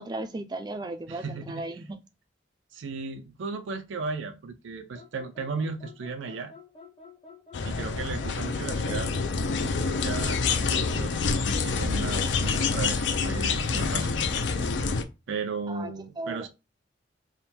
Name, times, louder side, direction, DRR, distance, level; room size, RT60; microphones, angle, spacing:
voice 1, 0.0-2.0 15.7-15.9 16.2-16.5, right 2 dB, 20° right, 0.4 m, -35 dB
voice 2, 1.1-1.8 2.7-6.5 7.6-9.1 9.8-14.1 15.3-16.5, right 4 dB, 90° right, 0.5 m, -35 dB
sound 1, 4.9-10.8, left 4 dB, 30° left, 0.7 m, -49 dB
sound 2, 7.5-15.0, left 4 dB, 75° left, 0.5 m, -27 dB
3.6 x 2.2 x 4.3 m
head